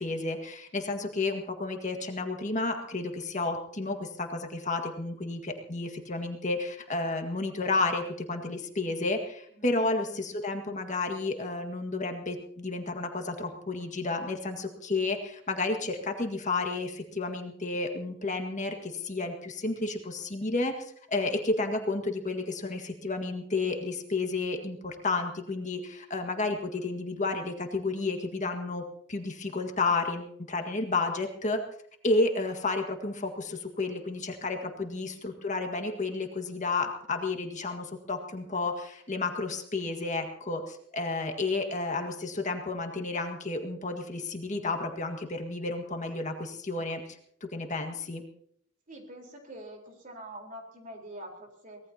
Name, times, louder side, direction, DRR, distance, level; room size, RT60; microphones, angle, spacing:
voice 1, 0.0-31.6 32.0-48.2, left 3 dB, 40° left, 4 dB, 1.8 m, -31 dB
voice 2, 48.9-51.8, right 1 dB, 45° right, 1 dB, 4.2 m, -45 dB
24.0 x 18.5 x 2.9 m, 0.67 s
head